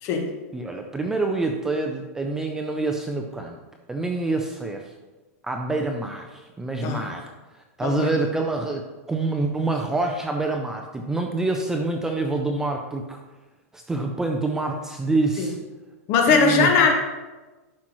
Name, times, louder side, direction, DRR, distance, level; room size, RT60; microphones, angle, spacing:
voice 1, 0.0-0.3 6.8-7.0 7.8-8.1 15.4-15.5 16.1-16.9, left 6 dB, 35° left, 3 dB, 1.2 m, -20 dB
voice 2, 0.5-3.6 3.9-4.9 5.4-7.3 7.5-13.2 13.7-15.6 16.3-16.9, right 3 dB, 5° right, 2 dB, 0.4 m, -26 dB
11.5 x 5.9 x 3.0 m, 1.2 s
supercardioid pair, 160°, 8 cm